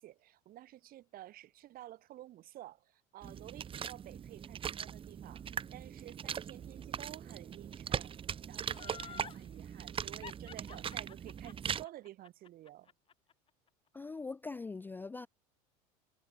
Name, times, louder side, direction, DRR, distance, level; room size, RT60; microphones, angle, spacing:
voice 1, 0.0-8.1 8.5-12.9, right 14 dB, 50° right, 1.8 m, -52 dB
sound 1, 3.2-11.8, right 8 dB, 30° right, 0.7 m, -40 dB
Laughter, 8.7-9.4 10.2-13.3 13.7-13.8, left 8 dB, 30° left, 0.9 m, -50 dB
voice 2, 13.9-15.3, left 4 dB, 10° left, 0.3 m, -42 dB
supercardioid pair, 95°, 19 cm